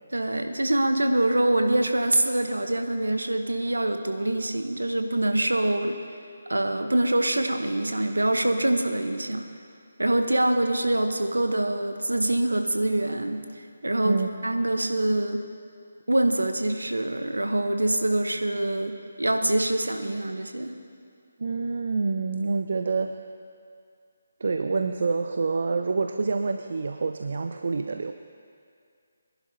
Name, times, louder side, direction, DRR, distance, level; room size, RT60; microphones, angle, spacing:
voice 1, 0.1-6.0 6.5-9.5 10.0-13.5 13.8-15.5 16.1-20.7, right 1 dB, 90° right, 6 dB, 1.0 m, -25 dB
voice 2, 21.4-23.2 24.4-28.1, right 4 dB, 60° right, 7 dB, 0.5 m, -27 dB
23.0 x 11.0 x 2.8 m, 2.3 s
figure-of-eight pair, 150°, 0 cm